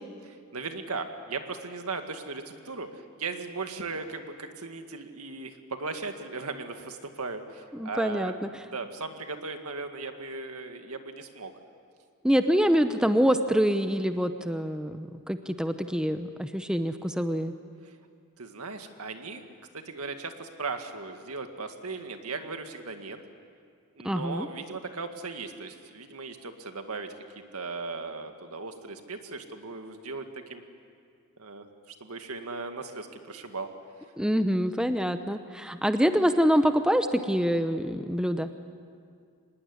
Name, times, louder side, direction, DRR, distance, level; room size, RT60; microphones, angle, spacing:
voice 1, 0.2-11.5 17.8-17.9 18.4-19.4 19.7-23.2 23.9-27.1 27.5-30.6 31.4-33.7, right 3 dB, 75° right, 6 dB, 2.0 m, -37 dB
voice 2, 7.7-8.3 12.2-17.5 24.0-24.5 34.2-38.5, equal, 5° right, 8 dB, 0.8 m, -25 dB
25.5 x 19.5 x 9.8 m, 2.2 s
head